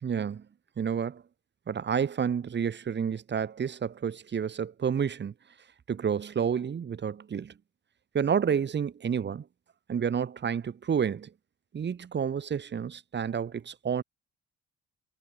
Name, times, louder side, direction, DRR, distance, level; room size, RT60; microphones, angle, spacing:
voice 1, 0.0-0.5 0.8-1.2 1.7-5.3 5.9-7.5 8.1-9.4 9.9-11.3 11.7-14.0, right 7 dB, 35° right, 1.0 m, -30 dB
cardioid pair, 90°, 30 cm